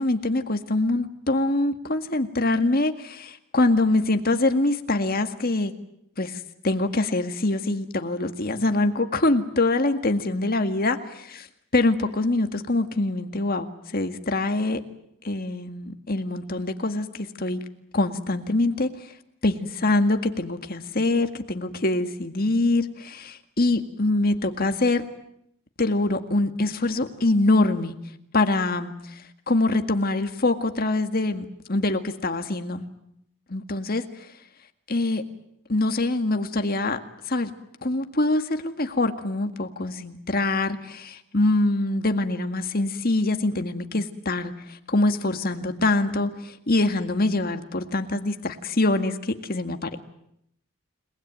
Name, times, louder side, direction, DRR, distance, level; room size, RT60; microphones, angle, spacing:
voice 1, 0.0-5.7 6.2-11.5 11.7-14.8 15.2-17.6 17.9-19.1 19.4-25.0 25.8-28.0 28.3-32.9 33.5-34.0 34.9-35.2 35.7-37.0 37.3-37.5 37.8-50.0, left 2 dB, 45° left, 7 dB, 2.0 m, -24 dB
30.0 x 20.0 x 9.3 m, 0.75 s
head